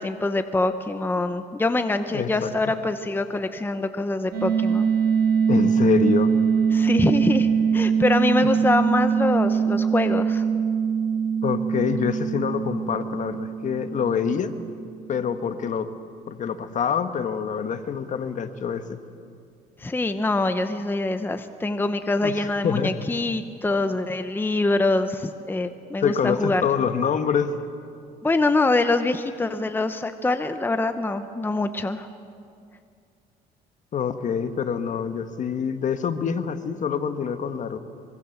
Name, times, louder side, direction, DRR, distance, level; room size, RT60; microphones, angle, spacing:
voice 1, 0.0-4.9 6.7-10.4 19.8-26.6 28.2-32.1, left 2 dB, 10° left, 9 dB, 0.9 m, -24 dB
voice 2, 2.1-2.5 5.5-6.4 11.4-14.5 15.1-15.9 16.3-19.0 22.2-23.0 26.0-27.5 33.9-37.8, left 7 dB, 45° left, 9 dB, 1.5 m, -26 dB
sound 1, 4.3-15.0, right 6 dB, 75° right, 4.2 m, -23 dB
25.0 x 23.5 x 7.3 m, 2.3 s
cardioid pair, 110°, 17 cm